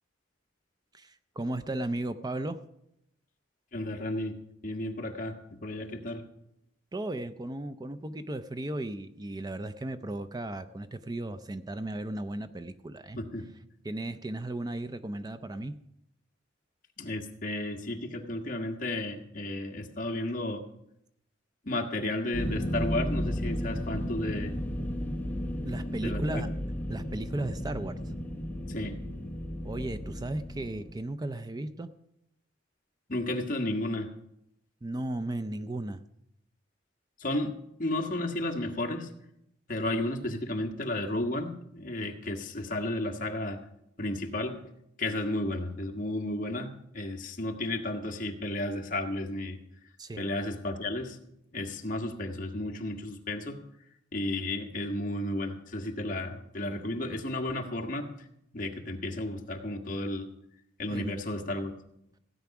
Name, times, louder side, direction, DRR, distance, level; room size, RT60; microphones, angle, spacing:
voice 1, 0.9-2.6 6.9-13.2 13.8-15.8 25.6-26.5 26.9-28.0 29.6-31.9 34.8-36.0 50.0-50.3 60.9-61.1, right 1 dB, 20° right, 11 dB, 0.5 m, -35 dB
voice 2, 3.7-4.3 4.6-6.2 13.1-13.5 17.0-20.6 21.6-24.5 26.0-26.5 28.7-29.0 33.1-34.1 37.2-37.5 37.8-39.1 39.7-43.6 44.0-44.6 45.0-49.6 50.2-51.2 51.5-53.6 54.1-58.1 58.5-60.3 60.8-61.7, left 1 dB, 45° left, 2 dB, 1.6 m, -33 dB
sound 1, 22.3-30.9, equal, 10° left, 1.3 m, -34 dB
16.5 x 9.3 x 5.9 m, 0.79 s
head